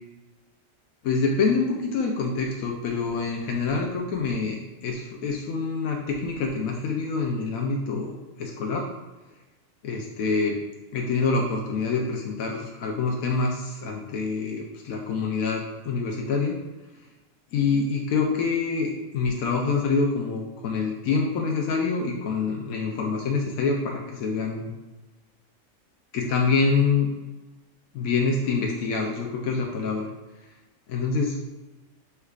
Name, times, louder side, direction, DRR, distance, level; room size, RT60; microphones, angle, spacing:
voice 1, 1.0-8.9 9.8-10.6 10.9-16.6 17.5-24.7 26.1-27.1 27.9-30.1 30.9-31.4, left 4 dB, 90° left, 0 dB, 1.0 m, -26 dB
5.6 x 3.3 x 2.3 m, 1.1 s
omnidirectional pair, 1.4 m